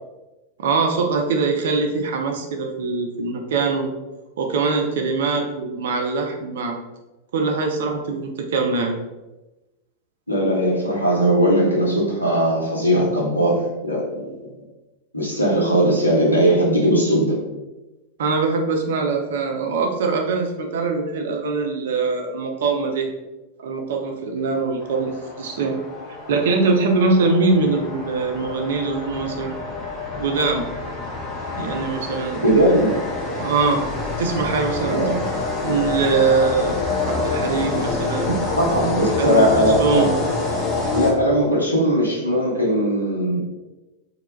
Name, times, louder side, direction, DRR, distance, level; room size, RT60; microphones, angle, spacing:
voice 1, 0.6-3.9 4.4-6.8 7.3-8.9 18.2-23.1 23.6-25.8 26.3-29.5 30.2-30.7 31.5-32.7 33.4-33.8 34.2-35.0 35.6-38.3 39.0-40.1, right 4 dB, 60° right, 3 dB, 0.4 m, -22 dB
voice 2, 10.3-14.3 15.1-17.4 32.4-33.1 34.9-35.2 38.6-40.1 40.9-43.4, equal, 85° left, -4 dB, 0.7 m, -19 dB
sound 1, 24.8-41.6, left 3 dB, 20° left, 0.8 m, -27 dB
2.1 x 2.1 x 3.0 m, 1.0 s
figure-of-eight pair, 90°, 0 cm